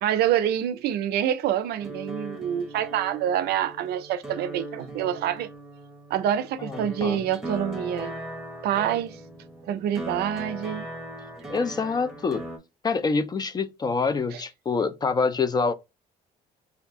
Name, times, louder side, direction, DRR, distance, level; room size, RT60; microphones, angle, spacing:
voice 1, 0.0-5.5 6.1-8.1 8.6-9.2 9.7-10.9 14.3-14.4, right 10 dB, 70° right, 0.5 m, -26 dB
sound 1, 1.8-12.6, right 1 dB, 5° right, 0.9 m, -39 dB
voice 2, 6.6-7.2 11.5-12.5 12.8-15.7, left 4 dB, 25° left, 0.3 m, -26 dB
2.6 x 2.3 x 3.5 m
cardioid pair, 110°, 17 cm